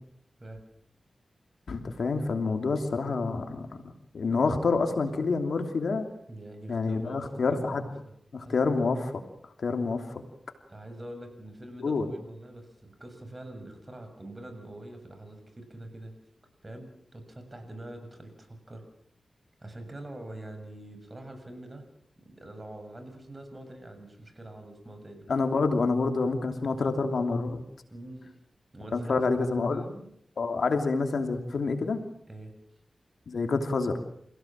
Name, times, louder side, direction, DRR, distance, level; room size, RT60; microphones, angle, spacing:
voice 1, 1.7-3.8 4.1-6.1 6.7-7.9 8.3-9.2 9.6-10.2 11.8-12.1 25.3-27.6 28.9-29.8 30.4-32.0 33.3-34.0, left 4 dB, 80° left, 6 dB, 2.9 m, -27 dB
voice 2, 6.3-8.1 8.4-8.5 10.7-16.2 16.6-18.8 19.6-21.8 22.2-25.3 27.9-28.3 28.7-30.1 32.3-32.5, right 1 dB, 30° right, 7 dB, 6.9 m, -44 dB
28.5 x 16.5 x 7.5 m, 0.71 s
cardioid pair, 50°, 0 cm